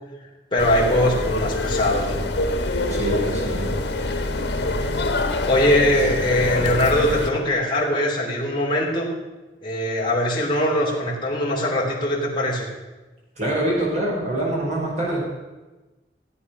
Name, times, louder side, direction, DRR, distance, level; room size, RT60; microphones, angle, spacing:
voice 1, 0.5-2.2 5.5-9.1 9.6-12.7, left 1 dB, 25° left, -2 dB, 2.8 m, -21 dB
sound 1, 0.6-7.3, left 2 dB, 80° left, 1.6 m, -25 dB
voice 2, 2.9-3.7 13.4-15.3, right 1 dB, 40° right, -4 dB, 5.2 m, -25 dB
15.0 x 8.7 x 6.0 m, 1.1 s
head